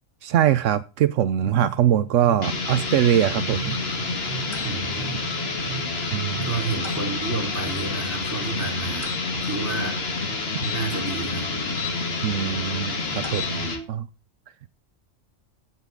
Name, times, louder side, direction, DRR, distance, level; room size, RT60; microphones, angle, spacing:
voice 1, 0.2-3.8 6.1-6.5 12.2-13.6 13.9-14.1, right 10 dB, 80° right, 1.0 m, -22 dB
sound 1, 1.4-6.6, right 6 dB, 35° right, 3.6 m, -38 dB
sound 2, 2.4-13.9, left 3 dB, 55° left, 1.8 m, -28 dB
sound 3, 4.5-4.8 6.8-7.1 9.0-9.2 10.6-11.9 13.2-13.5, left 5 dB, 25° left, 1.5 m, -36 dB
voice 2, 4.6-5.2 6.0-6.1 6.4-9.1 9.4-10.0 10.6-11.5, right 3 dB, 10° right, 3.9 m, -30 dB
15.0 x 5.8 x 3.8 m
omnidirectional pair, 1.3 m